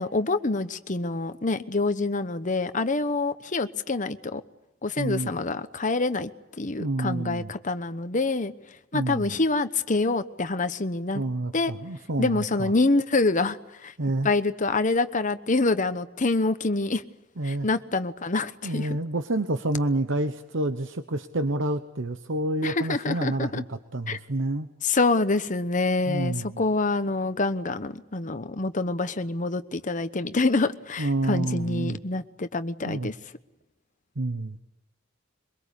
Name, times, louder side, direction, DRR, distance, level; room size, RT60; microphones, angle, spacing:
voice 1, 0.0-4.4 4.8-6.3 6.6-8.5 8.9-11.2 11.5-11.7 12.2-13.9 14.2-17.0 17.4-19.0 22.6-23.6 24.1-24.2 24.8-33.1, left 3 dB, 35° left, 11 dB, 1.0 m, -26 dB
voice 2, 5.0-5.3 6.8-7.5 8.9-9.4 11.1-12.7 14.0-14.3 17.4-17.7 18.6-24.7 26.1-26.6 31.0-32.0 32.8-33.1 34.2-34.6, right 2 dB, 65° right, 9 dB, 1.0 m, -28 dB
23.5 x 22.5 x 8.4 m, 0.94 s
head